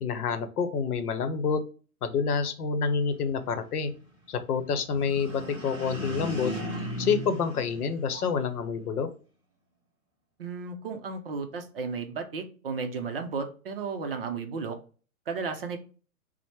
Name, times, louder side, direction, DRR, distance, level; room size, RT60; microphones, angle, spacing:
voice 1, 0.0-1.6 2.0-3.9 4.3-6.5 7.0-9.1, left 6 dB, 85° left, 10 dB, 0.7 m, -28 dB
sound 1, 4.9-8.5, equal, 5° right, 1.0 m, -36 dB
voice 2, 10.4-14.8 15.3-15.8, right 5 dB, 40° right, 6 dB, 0.5 m, -34 dB
3.1 x 2.1 x 4.1 m, 0.38 s
hypercardioid pair, 155°, 44 cm